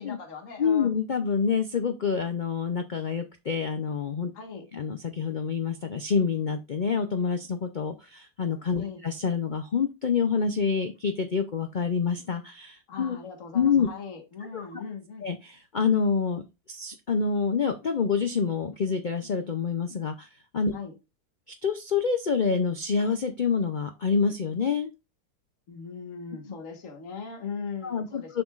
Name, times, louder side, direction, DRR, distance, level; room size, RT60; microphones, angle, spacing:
voice 1, 0.0-0.9 4.3-4.7 8.8-9.0 12.9-15.3 20.7-21.0 25.7-28.4, left 5 dB, 50° left, 1.8 m, -39 dB
voice 2, 0.6-4.3 4.7-13.2 13.5-13.9 14.5-14.7 15.2-16.4 16.7-20.7 21.6-24.9 27.8-28.4, left 6 dB, 90° left, 0.4 m, -27 dB
7.7 x 5.9 x 2.4 m
omnidirectional pair, 1.7 m